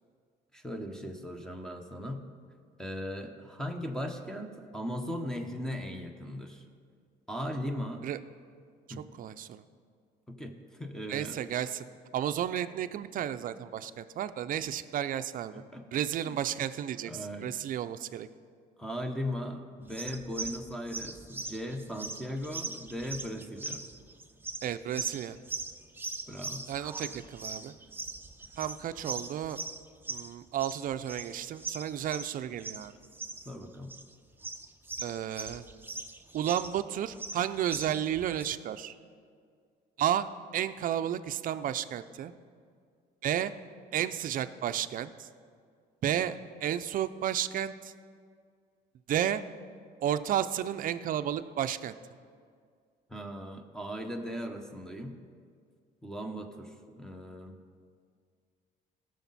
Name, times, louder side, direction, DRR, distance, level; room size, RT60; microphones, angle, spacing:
voice 1, 0.5-2.2 2.8-6.6 7.3-8.1 8.9-9.1 10.3-10.5 10.8-11.4 15.7-15.8 16.2-16.4 17.1-17.5 18.8-23.8 26.3-26.6 27.0-27.1 33.4-33.9 53.1-55.2 56.0-57.6, equal, 5° left, 4 dB, 1.0 m, -38 dB
voice 2, 9.2-9.6 11.1-11.8 12.1-15.6 15.9-18.3 24.6-25.4 26.7-27.7 28.6-29.6 30.1-32.9 35.0-35.6 36.3-38.9 40.0-42.3 43.2-43.5 43.9-45.3 46.0-47.9 49.1-49.4 50.0-51.9, right 10 dB, 50° right, 12 dB, 0.5 m, -32 dB
sound 1, 19.9-36.8 37.1-38.5, right 3 dB, 10° right, 0.6 m, -40 dB
17.0 x 6.5 x 4.1 m, 2.1 s
cardioid pair, 110°, 17 cm